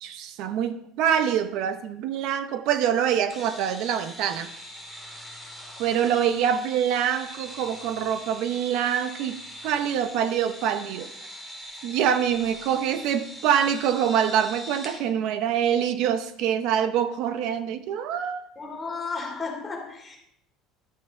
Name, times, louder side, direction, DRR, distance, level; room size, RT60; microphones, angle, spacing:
voice 1, 0.0-4.5 5.8-11.1 11.8-18.5, right 9 dB, 65° right, 0.7 m, -25 dB
sound 1, 3.3-15.0, equal, 10° right, 2.3 m, -42 dB
voice 2, 18.6-20.2, left 4 dB, 20° left, 3.0 m, -33 dB
12.0 x 7.8 x 3.8 m
cardioid pair, 130°, 0 cm